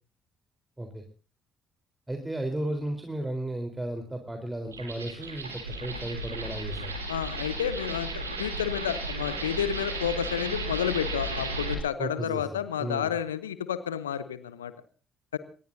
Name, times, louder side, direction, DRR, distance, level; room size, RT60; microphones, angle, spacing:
voice 1, 2.1-6.9 12.0-12.5 12.8-13.1, right 1 dB, 15° right, 4 dB, 4.0 m, -34 dB
sound 1, 4.7-11.7, right 2 dB, 90° right, 3.2 m, -34 dB
voice 2, 7.1-14.7 15.3-15.4, left 9 dB, 85° left, 14 dB, 0.9 m, -30 dB
25.5 x 19.5 x 2.7 m, 0.37 s
figure-of-eight pair, 45°, 0 cm